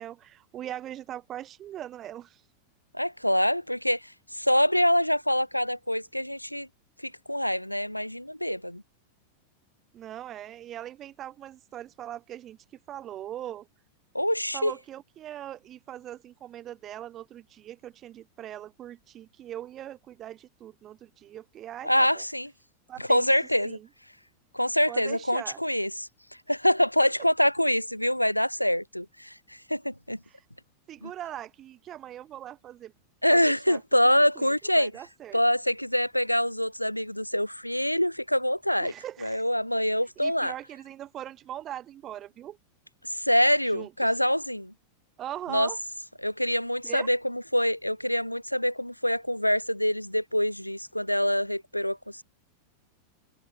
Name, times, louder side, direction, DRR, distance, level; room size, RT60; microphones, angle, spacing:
voice 1, 0.0-2.4 9.9-12.6 12.9-13.7 14.5-22.2 22.9-23.3 23.6-23.9 24.9-25.6 30.3-30.4 30.9-32.9 33.3-35.4 38.8-39.4 40.2-42.6 43.7-44.1 45.2-45.8 46.8-47.1, right 12 dB, 30° right, 7.0 m, -41 dB
voice 2, 2.9-4.0 4.3-6.7 7.0-8.8 14.1-14.7 21.8-22.5 23.0-23.8 24.5-26.1 26.5-29.3 29.7-30.2 31.0-31.1 33.2-34.9 35.3-38.9 39.2-40.5 43.0-44.7 45.5-45.7 46.2-52.2, equal, 90° left, 1.4 m, -25 dB
figure-of-eight pair, 90°, 0 cm